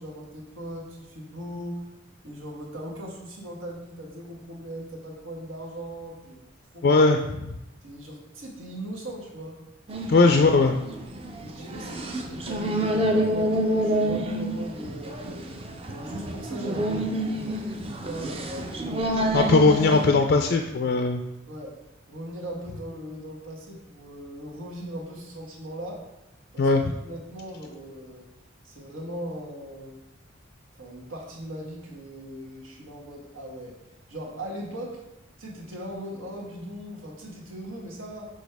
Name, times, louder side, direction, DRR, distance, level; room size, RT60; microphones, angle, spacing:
voice 1, 0.0-1.9 2.2-6.4 6.7-7.0 7.8-9.6 10.0-10.3 11.4-15.5 15.9-17.6 18.0-19.5 21.5-21.8 22.1-26.0 26.5-26.7 27.0-28.2 28.6-30.0 30.8-33.7 34.1-35.0 35.4-38.3, equal, 90° right, -1 dB, 1.5 m, -39 dB
voice 2, 6.8-7.2 10.1-10.7 19.3-21.2 26.6-26.9, left 3 dB, 50° left, 4 dB, 0.4 m, -19 dB
sound 1, 9.9-20.1, right 1 dB, 30° right, 0.5 m, -28 dB
6.3 x 5.2 x 3.5 m, 0.93 s
head